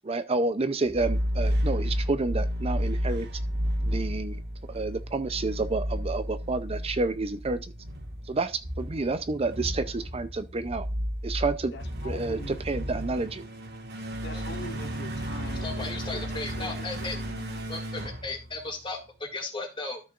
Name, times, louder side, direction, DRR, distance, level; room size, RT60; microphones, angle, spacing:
voice 1, 0.0-3.3 3.8-4.4 4.7-7.7 8.3-10.9 11.2-11.7 12.0-12.4 12.7-13.4, right 3 dB, 30° right, 0.5 m, -29 dB
sound 1, 0.9-19.0, equal, 60° right, 1.6 m, -32 dB
voice 2, 11.6-12.6 14.2-17.6, left 2 dB, 65° left, 1.6 m, -44 dB
voice 3, 15.6-17.2 17.7-20.0, left 3 dB, 25° left, 2.2 m, -36 dB
13.0 x 6.1 x 2.5 m
head